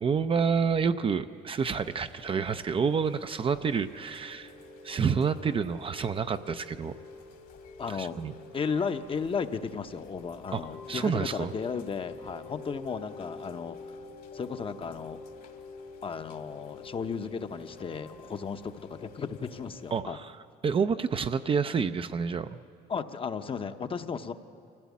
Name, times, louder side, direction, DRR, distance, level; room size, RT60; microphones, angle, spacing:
voice 1, 0.0-4.5 4.8-6.9 7.9-8.3 10.5-10.6 10.9-11.5 19.9-20.3 20.6-22.6, right 6 dB, 30° right, 10 dB, 0.5 m, -28 dB
Chime / Rain, 1.6-20.0, left 3 dB, 60° left, 1.9 m, -48 dB
voice 2, 7.8-8.2 8.5-14.0 14.3-15.2 16.0-20.2 22.9-24.3, left 5 dB, 30° left, 9 dB, 0.8 m, -34 dB
24.5 x 15.5 x 8.4 m, 2.5 s
cardioid pair, 110°, 17 cm